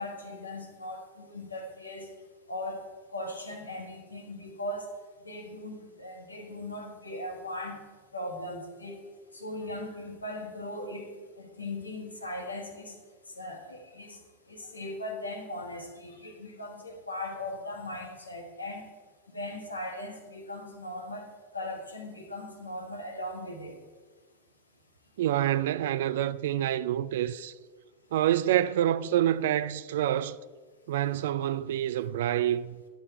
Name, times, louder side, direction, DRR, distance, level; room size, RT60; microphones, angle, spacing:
voice 1, 0.0-2.1 2.5-2.8 3.1-4.9 5.2-7.8 8.1-9.0 9.3-13.0 13.4-14.2 14.5-18.9 19.3-21.3 21.5-23.8, left 1 dB, 80° left, 1.4 m, -38 dB
voice 2, 25.2-27.5 28.1-30.4 30.9-32.8, right 12 dB, 55° right, 0.3 m, -27 dB
10.5 x 7.1 x 4.3 m
figure-of-eight pair, 90°, 0 cm